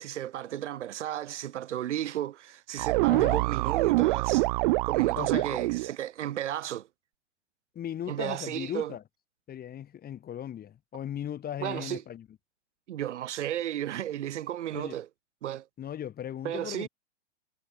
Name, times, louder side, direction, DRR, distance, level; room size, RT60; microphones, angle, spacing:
voice 1, 0.0-4.5 4.8-6.9 8.1-8.9 11.6-12.0 12.9-15.1 15.4-15.7 16.4-16.9, right 12 dB, 75° right, 1.0 m, -34 dB
sound 1, 2.8-5.9, right 22 dB, 45° right, 0.5 m, -25 dB
voice 2, 3.1-3.4 5.2-5.6 7.7-9.0 9.5-12.3 14.7-15.0 15.8-16.9, left 10 dB, 25° left, 4.4 m, -37 dB
hypercardioid pair, 115°, 35 cm